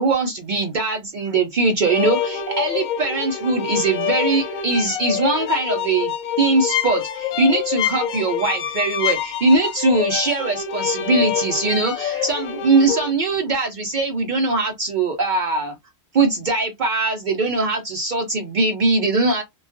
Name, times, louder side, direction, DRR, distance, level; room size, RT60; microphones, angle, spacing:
voice 1, 0.0-6.1 6.4-15.8 16.1-19.4, right 3 dB, 75° right, 0.4 m, -21 dB
sound 1, 1.8-13.1, left 8 dB, 90° left, 1.0 m, -26 dB
2.3 x 2.2 x 2.4 m
omnidirectional pair, 1.4 m